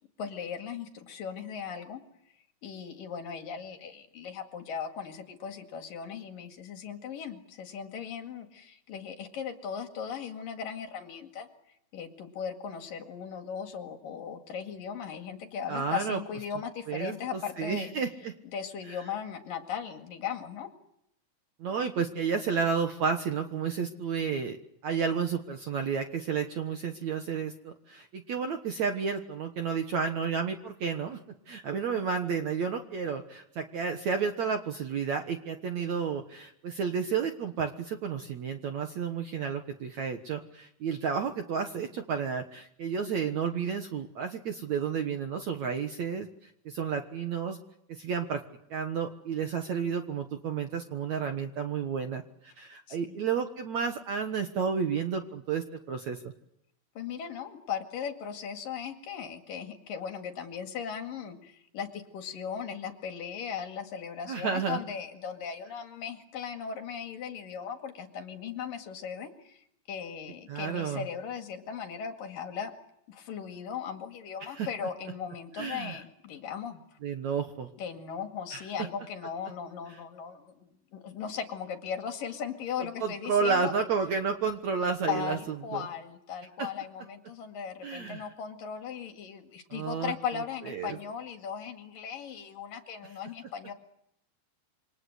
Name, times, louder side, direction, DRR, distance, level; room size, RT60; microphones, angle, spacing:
voice 1, 0.2-2.0 2.6-11.5 11.9-17.9 18.5-20.7 52.9-53.3 57.0-72.7 73.1-76.8 77.8-83.7 85.1-93.7, left 7 dB, 60° left, 5 dB, 3.5 m, -38 dB
voice 2, 15.7-16.2 16.9-18.3 18.9-19.0 21.6-24.6 24.8-31.2 31.5-47.6 47.9-48.4 48.7-56.3 64.3-64.8 70.5-71.0 74.6-74.7 75.5-76.0 77.0-77.7 78.5-78.6 83.0-85.4 85.7-85.8 87.8-88.3 89.7-90.1 90.7-91.0, right 6 dB, 60° right, 6 dB, 2.1 m, -31 dB
28.0 x 25.0 x 8.0 m, 0.76 s
omnidirectional pair, 4.8 m